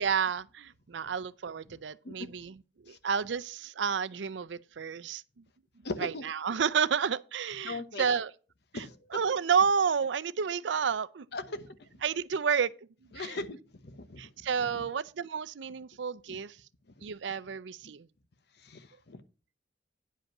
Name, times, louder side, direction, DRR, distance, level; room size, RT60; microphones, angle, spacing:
voice 1, 0.0-2.5 2.9-5.2 6.0-8.3 8.7-8.8 9.1-11.3 12.0-12.7 13.2-13.4 14.2-16.6 17.0-18.1, right 6 dB, 85° right, 0.5 m, -30 dB
voice 2, 5.8-6.2 7.6-8.2 8.7-9.2 11.3-11.9 13.1-13.6 13.8-14.8 16.3-16.4 17.0-17.1 17.8-17.9 18.6-19.2, left 2 dB, 65° left, 1.0 m, -40 dB
9.9 x 5.3 x 5.9 m
head